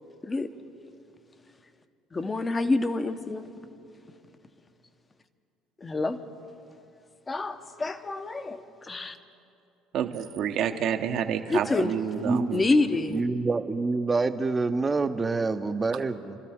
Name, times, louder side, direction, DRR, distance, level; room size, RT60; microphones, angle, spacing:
voice 1, 2.1-3.5 5.8-6.2 7.3-9.2 11.5-11.9 12.5-13.2, left 2 dB, 25° left, 10 dB, 0.9 m, -27 dB
voice 2, 9.9-12.6, right 8 dB, 60° right, 6 dB, 1.0 m, -29 dB
voice 3, 13.1-16.4, right 3 dB, 25° right, 10 dB, 0.8 m, -26 dB
27.5 x 13.0 x 3.6 m, 2.7 s
supercardioid pair, 80°, 0 cm